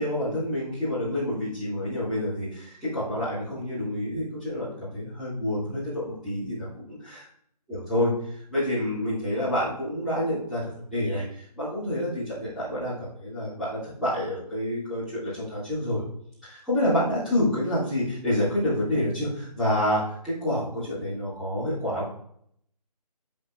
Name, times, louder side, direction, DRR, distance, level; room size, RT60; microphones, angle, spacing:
voice 1, 0.0-7.3 7.7-8.1 8.5-16.0 16.4-22.0, left 1 dB, ahead, -18 dB, 2.0 m, -28 dB
9.3 x 5.1 x 2.4 m, 0.67 s
figure-of-eight pair, 150°, 21 cm